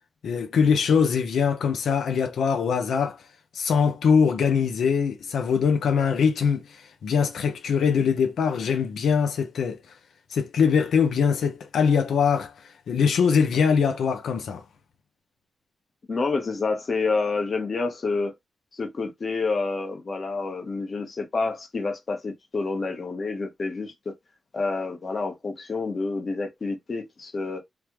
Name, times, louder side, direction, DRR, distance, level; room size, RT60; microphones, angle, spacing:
voice 1, 0.2-3.2 3.5-9.8 10.3-12.5 12.9-14.6, left 6 dB, 90° left, 0.8 m, -22 dB
voice 2, 16.1-18.3 18.7-24.1 24.5-27.6, left 3 dB, 40° left, 1.2 m, -28 dB
3.6 x 3.2 x 3.1 m
wide cardioid pair, 155°, 0 cm